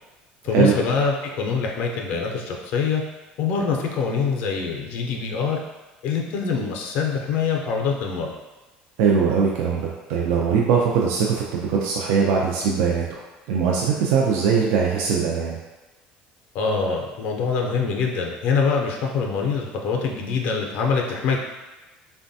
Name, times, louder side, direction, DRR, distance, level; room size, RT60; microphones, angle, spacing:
voice 1, 0.4-3.0 3.4-5.6 6.0-8.3 16.5-21.4, left 5 dB, 65° left, 1 dB, 0.4 m, -24 dB
voice 2, 9.0-13.2 13.5-15.6, right 6 dB, 75° right, -2 dB, 0.4 m, -21 dB
3.2 x 2.2 x 2.6 m, 1.1 s
cardioid pair, 125°, 3 cm